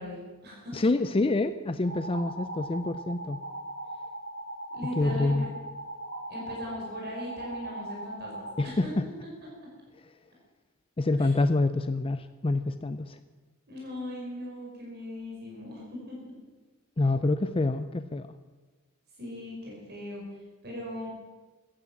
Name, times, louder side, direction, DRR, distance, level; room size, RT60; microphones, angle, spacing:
voice 1, 0.0-0.8 4.7-5.5 6.3-8.9 9.6-9.7 11.2-11.3 13.7-16.2 19.2-20.2 20.6-21.1, left 1 dB, 50° right, -3 dB, 5.7 m, -39 dB
voice 2, 0.7-3.4 5.0-5.5 8.6-9.0 11.0-13.2 17.0-18.3, left 2 dB, 25° left, 10 dB, 0.5 m, -27 dB
sound 1, 1.8-8.6, right 1 dB, 70° right, 2.7 m, -39 dB
15.5 x 12.5 x 7.3 m, 1.3 s
head